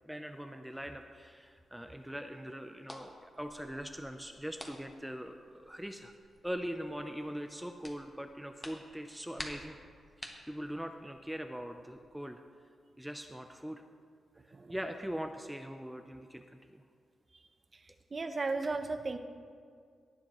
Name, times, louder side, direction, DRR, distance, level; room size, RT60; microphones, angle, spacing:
voice 1, 0.1-6.1 6.4-9.8 10.5-12.4 13.0-13.8 14.7-16.8, equal, 5° right, 6 dB, 0.5 m, -41 dB
sound 1, 0.7-12.0, left 1 dB, 20° left, 1.2 m, -52 dB
voice 2, 18.1-19.2, right 3 dB, 35° right, 8 dB, 0.8 m, -35 dB
18.0 x 7.1 x 3.0 m, 2.2 s
cardioid pair, 80°, 0 cm